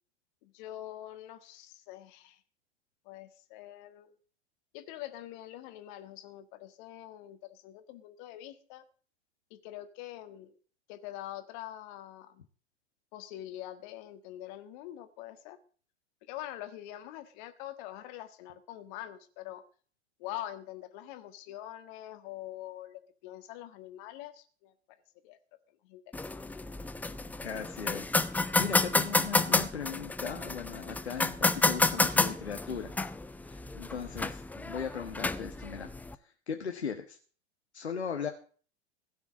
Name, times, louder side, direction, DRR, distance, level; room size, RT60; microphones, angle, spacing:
voice 1, 0.4-2.4 3.0-4.2 4.7-8.8 9.5-10.5 10.9-12.5 13.1-15.6 16.3-19.6 20.2-24.7 25.2-25.4 25.8-26.0 34.0-34.2, left 13 dB, 45° left, 10 dB, 1.6 m, -44 dB
sound 1, 26.1-36.1, left 3 dB, 5° left, 0.6 m, -30 dB
voice 2, 27.4-32.9 33.4-35.9 36.2-37.2 37.7-38.3, left 6 dB, 80° left, 4 dB, 1.3 m, -38 dB
16.0 x 5.9 x 8.4 m, 0.42 s
figure-of-eight pair, 90°, 33 cm